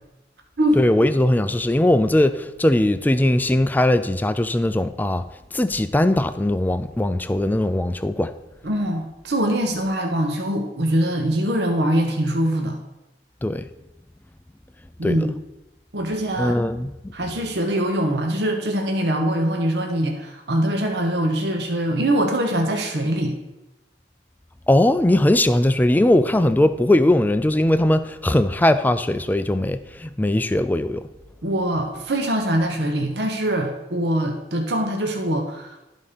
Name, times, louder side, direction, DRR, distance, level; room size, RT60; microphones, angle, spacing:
voice 1, 0.8-5.2 5.5-8.3 13.4-13.6 15.0-15.3 16.4-16.9 24.7-31.0, left 1 dB, 10° left, 0.3 m, -19 dB
voice 2, 8.6-12.8 15.0-15.4 15.9-16.6 17.1-23.4 31.4-35.7, right 1 dB, 65° right, 1.0 m, -23 dB
12.5 x 4.1 x 5.1 m
head